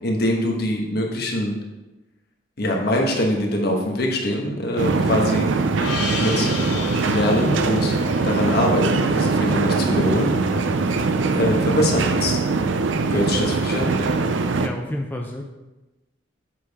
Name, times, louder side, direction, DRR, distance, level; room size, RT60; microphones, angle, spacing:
voice 1, 0.0-1.6 2.6-5.5 6.2-6.5 7.0-8.0 8.2-10.3 11.4-12.4 13.1-14.0, left 1 dB, 55° left, 0 dB, 1.3 m, -23 dB
sound 1, 4.8-14.7, right 3 dB, 80° right, 0.5 m, -22 dB
Gong, 5.8-10.6, left 2 dB, 75° left, 0.9 m, -33 dB
voice 2, 14.5-15.4, left 1 dB, 10° left, 1 dB, 0.5 m, -31 dB
7.5 x 6.4 x 3.5 m, 1.1 s
head